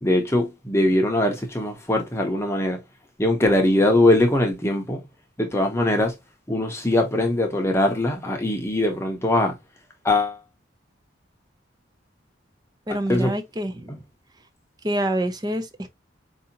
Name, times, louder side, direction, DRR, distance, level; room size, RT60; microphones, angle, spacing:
voice 1, 0.0-2.8 3.2-5.0 5.4-6.1 6.5-9.5 10.0-10.4 13.1-13.3, left 1 dB, 15° left, 0.8 m, -21 dB
voice 2, 12.9-14.0 14.8-15.9, right 1 dB, 20° right, 0.5 m, -26 dB
4.7 x 2.8 x 2.7 m
head